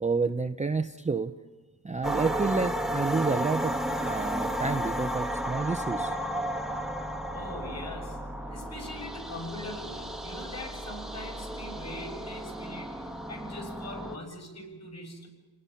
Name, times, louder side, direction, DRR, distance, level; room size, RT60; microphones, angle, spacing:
voice 1, 0.0-1.3 1.8-3.7 4.0-6.1, right 4 dB, 15° right, 8 dB, 0.7 m, -29 dB
sound 1, 2.0-14.2, right 1 dB, ahead, 1.4 m, -33 dB
voice 2, 7.3-8.2 8.5-15.3, left 1 dB, 40° left, 0 dB, 7.4 m, -42 dB
29.5 x 19.0 x 5.7 m, 1.3 s
wide cardioid pair, 115°, 42 cm